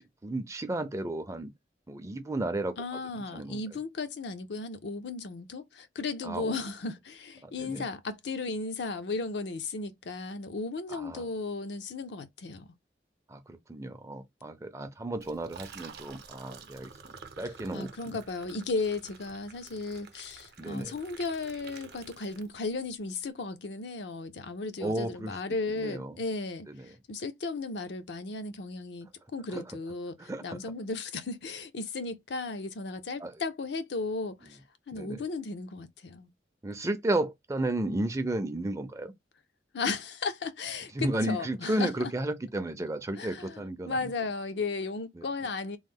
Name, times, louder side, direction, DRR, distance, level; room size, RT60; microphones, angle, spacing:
voice 1, 0.0-1.5 1.9-2.7 3.3-3.6 6.2-6.6 7.4-7.8 10.9-11.3 13.3-16.9 17.4-18.2 20.6-20.9 24.8-25.4 25.8-26.2 26.7-26.9 29.5-29.7 30.2-30.6 33.2-33.3 34.9-35.2 36.6-39.1 40.9-44.1 45.1-45.3, right 1 dB, 15° right, 0.4 m, -33 dB
voice 2, 2.8-12.7 17.7-34.6 34.9-36.3 39.7-41.9 43.2-45.8, left 3 dB, 75° left, 0.5 m, -35 dB
Liquid, 15.1-22.8, right 5 dB, 60° right, 0.6 m, -50 dB
3.0 x 2.1 x 3.5 m
head